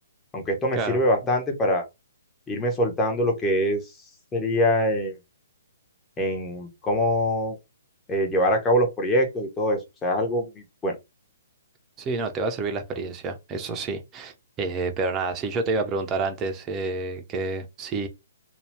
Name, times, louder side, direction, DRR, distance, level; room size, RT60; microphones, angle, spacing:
voice 1, 0.3-1.8 2.5-3.8 4.3-5.1 6.2-7.6 8.1-10.9, equal, 15° left, 0.8 m, -24 dB
voice 2, 12.0-18.1, right 3 dB, 20° right, 0.6 m, -29 dB
2.8 x 2.3 x 3.3 m
figure-of-eight pair, 125°, 0 cm